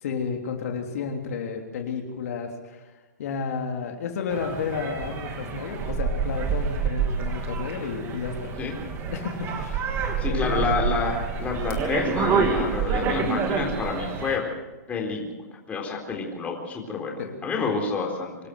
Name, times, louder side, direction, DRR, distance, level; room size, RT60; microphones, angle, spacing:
voice 1, 0.0-2.9 3.2-8.5 9.1-10.0 10.3-10.8 17.2-17.4, left 5 dB, 60° left, 2 dB, 3.3 m, -31 dB
sound 1, 4.3-14.4, right 5 dB, 25° right, 3.0 m, -28 dB
voice 2, 10.2-14.4 14.9-15.3 15.7-18.3, left 4 dB, 15° left, 0 dB, 4.1 m, -28 dB
26.0 x 13.0 x 8.0 m, 1.2 s
hypercardioid pair, 145°, 9 cm